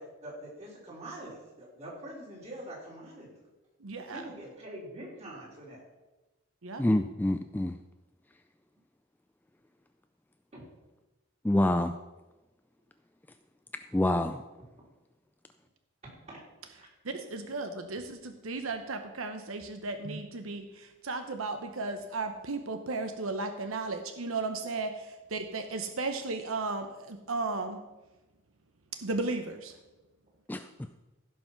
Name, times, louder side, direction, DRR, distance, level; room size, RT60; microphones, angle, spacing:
voice 1, 0.0-3.4 4.1-5.8 10.5-10.7 16.3-16.4 16.8-16.9, right 1 dB, 30° right, -4 dB, 3.5 m, -44 dB
voice 2, 3.8-4.3 6.6-6.8 17.0-27.8 29.0-29.7, right 3 dB, 80° right, 7 dB, 0.9 m, -35 dB
voice 3, 6.8-7.8 11.4-11.9 13.9-14.4 30.5-30.7, left 1 dB, 10° left, 8 dB, 0.3 m, -26 dB
15.5 x 5.6 x 5.8 m, 1.1 s
head